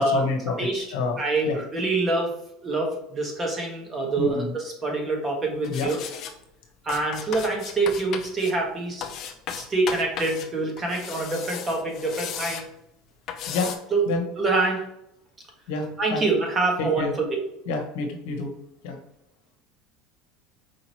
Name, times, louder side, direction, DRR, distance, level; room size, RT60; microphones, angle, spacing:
voice 1, 0.0-1.2 1.4-1.6 4.2-4.5 5.7-5.9 13.5-13.7 14.1-14.2 15.7-16.2 16.8-17.1 17.6-18.5 18.8-19.0, left 3 dB, 80° left, 3 dB, 1.0 m, -28 dB
voice 2, 1.2-2.3 2.6-6.0 6.8-9.1 9.6-12.7 13.9-14.0 14.4-14.8 16.0-17.2, right 3 dB, 25° right, 0 dB, 1.3 m, -25 dB
sound 1, 5.6-6.3 6.9-8.5 9.0-10.5 10.8-12.6 13.3-13.8, left 8 dB, 50° left, 0.6 m, -35 dB
4.8 x 2.9 x 3.0 m, 0.80 s
supercardioid pair, 120°, 0 cm